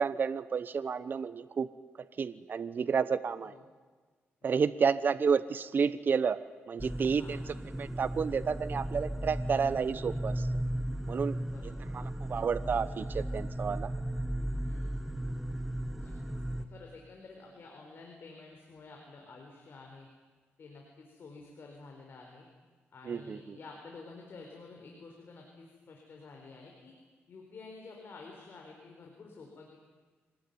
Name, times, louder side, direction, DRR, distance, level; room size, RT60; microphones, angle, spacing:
voice 1, 0.0-1.7 2.2-3.6 4.4-10.5 11.1-11.4 11.9-13.9 23.0-23.6, right 6 dB, 50° right, 13 dB, 0.9 m, -31 dB
sound 1, 6.8-16.6, right 1 dB, 5° right, 1.4 m, -36 dB
voice 2, 11.4-11.9 14.7-14.9 16.0-20.1 20.6-22.5 22.9-26.9 27.3-29.8, left 3 dB, 55° left, 1 dB, 4.4 m, -50 dB
25.0 x 19.0 x 9.5 m, 1.4 s
cardioid pair, 105°, 5 cm